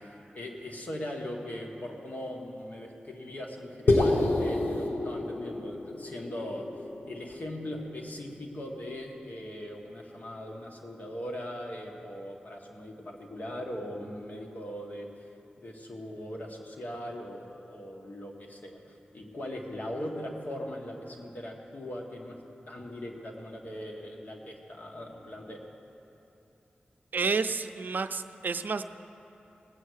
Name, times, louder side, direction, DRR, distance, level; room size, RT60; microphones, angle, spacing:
voice 1, 0.1-15.3 15.6-22.4 22.7-25.6, left 1 dB, 55° left, 0 dB, 1.7 m, -40 dB
sound 1, 3.9-8.3, left 2 dB, 80° left, 1.1 m, -29 dB
voice 2, 27.1-28.8, right 4 dB, 65° right, 9 dB, 0.5 m, -30 dB
18.5 x 8.0 x 6.5 m, 3.0 s
wide cardioid pair, 80°, 3 cm